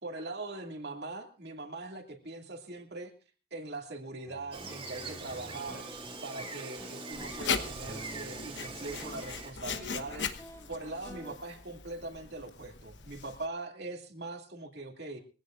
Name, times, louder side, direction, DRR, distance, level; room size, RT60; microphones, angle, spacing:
voice 1, 0.0-3.1 3.5-5.9 6.2-10.3 10.7-15.2, right 2 dB, 65° right, 3 dB, 2.4 m, -41 dB
sound 1, 4.3-11.3, left 1 dB, 15° left, 2.2 m, -49 dB
Gull seagull, 4.5-9.5, right 4 dB, 30° right, 2.6 m, -43 dB
Writing, 7.1-13.4, left 6 dB, 70° left, 1.2 m, -39 dB
23.0 x 16.5 x 2.5 m, 0.35 s
head